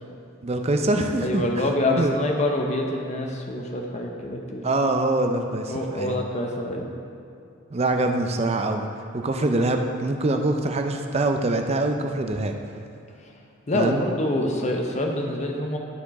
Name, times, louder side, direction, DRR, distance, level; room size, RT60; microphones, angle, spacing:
voice 1, 0.4-1.5 2.0-2.2 4.6-6.2 7.7-8.9 9.1-12.6 13.7-14.0, right 2 dB, 30° right, 5 dB, 0.4 m, -24 dB
voice 2, 1.2-4.7 5.7-6.9 13.7-15.8, left 1 dB, 30° left, 1 dB, 0.7 m, -26 dB
12.0 x 4.3 x 4.1 m, 2.6 s
head